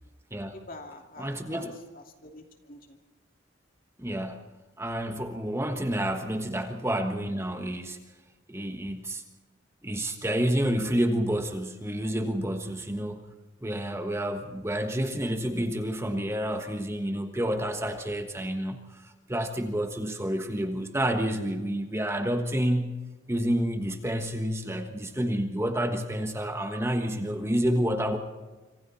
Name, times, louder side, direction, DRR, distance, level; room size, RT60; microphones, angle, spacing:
voice 1, 0.5-1.7 1.9-3.0, left 2 dB, 45° left, 3 dB, 2.7 m, -46 dB
voice 2, 1.2-1.8 4.0-4.5 4.8-8.0 8.5-9.2 9.8-13.2 13.6-22.9 23.3-28.2, equal, 15° right, 5 dB, 1.3 m, -29 dB
26.0 x 26.0 x 4.2 m, 1.2 s
head